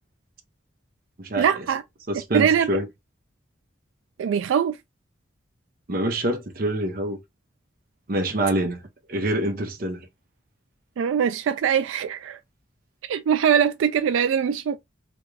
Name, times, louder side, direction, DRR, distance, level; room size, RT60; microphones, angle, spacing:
voice 1, 1.4-1.8 2.3-2.7 4.2-4.8 11.0-12.4 13.1-14.8, right 8 dB, 85° right, 0.3 m, -22 dB
voice 2, 2.1-2.9 5.9-7.2 8.1-8.8 9.1-10.0, right 1 dB, 45° right, 0.8 m, -25 dB
3.4 x 2.5 x 3.2 m
head